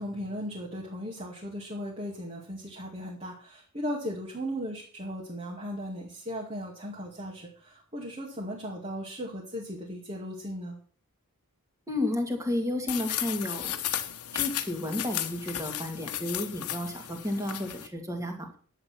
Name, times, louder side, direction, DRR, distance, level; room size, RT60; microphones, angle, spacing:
voice 1, 0.0-10.8, equal, 30° right, -3 dB, 2.3 m, -37 dB
voice 2, 11.9-13.8 14.3-18.6, left 1 dB, 15° right, 3 dB, 2.5 m, -32 dB
sound 1, 12.9-17.9, left 11 dB, 90° left, 1.2 m, -34 dB
11.0 x 8.9 x 6.0 m, 0.42 s
head